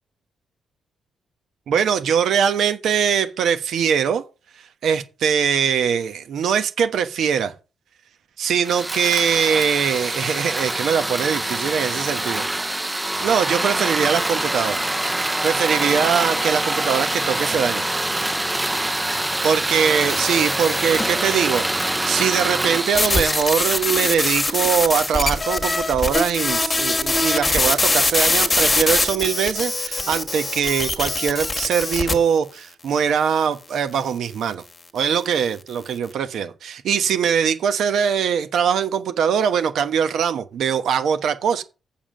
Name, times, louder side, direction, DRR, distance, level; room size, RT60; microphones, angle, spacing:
voice 1, 1.7-4.2 4.8-7.5 8.4-12.5 13.2-14.8 15.4-17.9 19.4-21.6 22.0-34.6 34.9-41.6, right 7 dB, 75° right, 1.1 m, -22 dB
sound 1, 8.6-24.8, right 1 dB, 10° right, 0.5 m, -25 dB
sound 2, 20.1-21.2 22.9-32.1, left 2 dB, 20° left, 1.6 m, -22 dB
7.3 x 7.2 x 7.5 m
cardioid pair, 130°, 0 cm